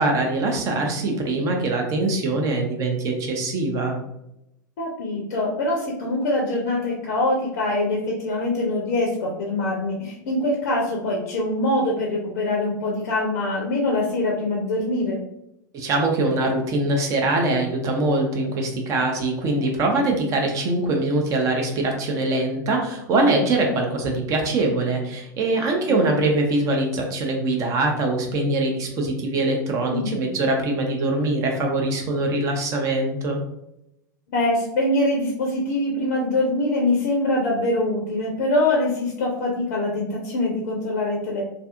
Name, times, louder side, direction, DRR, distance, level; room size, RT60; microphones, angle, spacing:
voice 1, 0.0-4.0 15.7-33.4, right 2 dB, 30° right, 2 dB, 0.5 m, -23 dB
voice 2, 4.8-15.2 25.9-26.0 29.9-30.3 34.3-41.4, left 2 dB, 55° left, -1 dB, 0.5 m, -24 dB
2.5 x 2.4 x 2.4 m, 0.83 s
figure-of-eight pair, 90°, 11 cm